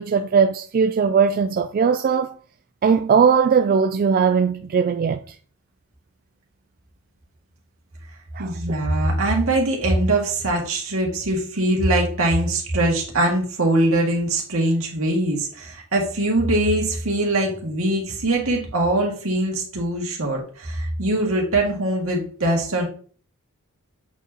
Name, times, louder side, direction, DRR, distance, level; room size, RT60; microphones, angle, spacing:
voice 1, 0.0-2.3 2.8-5.2 8.4-8.5, right 6 dB, 40° right, 0.3 m, -19 dB
voice 2, 8.4-22.9, right 1 dB, 65° right, 2.1 m, -22 dB
8.0 x 4.7 x 2.9 m
head